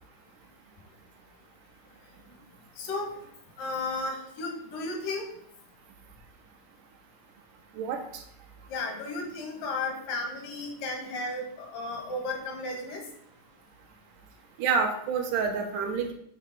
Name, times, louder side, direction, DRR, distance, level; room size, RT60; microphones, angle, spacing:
voice 1, 2.8-3.1 3.6-5.3 8.7-13.0, left 2 dB, 85° left, 2 dB, 3.2 m, -34 dB
voice 2, 14.6-16.1, right 5 dB, 75° right, 3 dB, 2.3 m, -27 dB
8.0 x 3.5 x 6.0 m, 0.71 s
omnidirectional pair, 3.8 m